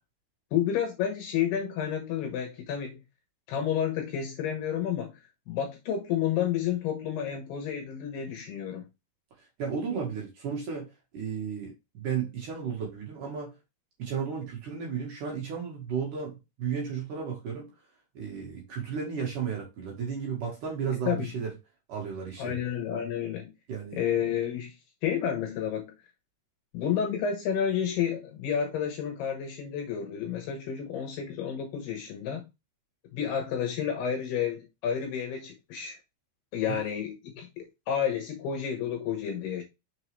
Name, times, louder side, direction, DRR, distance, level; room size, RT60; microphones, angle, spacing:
voice 1, 0.5-3.0 3.5-5.1 5.5-8.9 21.1-21.3 22.4-23.5 23.9-24.7 25.0-25.9 26.7-32.4 33.1-36.0 36.5-39.6, left 8 dB, 75° left, 2.7 m, -30 dB
voice 2, 9.6-13.5 14.0-17.7 18.1-21.5 21.9-22.7 23.7-24.0 36.7-36.8, right 6 dB, 55° right, 2.6 m, -34 dB
6.4 x 4.7 x 3.2 m
omnidirectional pair, 5.5 m